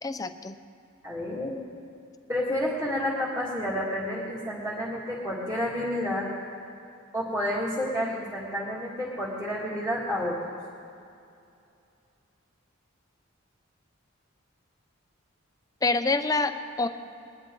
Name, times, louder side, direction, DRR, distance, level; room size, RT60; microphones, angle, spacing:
voice 1, 0.0-0.6 15.8-16.9, left 3 dB, 15° left, 9 dB, 0.4 m, -26 dB
voice 2, 1.0-1.5 2.3-6.3 7.1-10.4, left 1 dB, 10° right, -10 dB, 2.1 m, -30 dB
21.5 x 11.0 x 3.8 m, 2.5 s
head